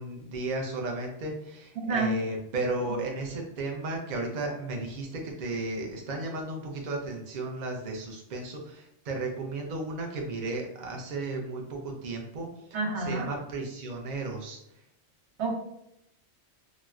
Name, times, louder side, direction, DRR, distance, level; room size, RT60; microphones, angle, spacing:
voice 1, 0.0-12.5 13.0-14.6, right 2 dB, 50° right, 1 dB, 0.5 m, -34 dB
voice 2, 1.8-2.1 12.7-13.3 15.4-15.5, right 3 dB, 70° right, -1 dB, 1.0 m, -28 dB
4.0 x 2.0 x 2.3 m, 0.80 s
omnidirectional pair, 1.3 m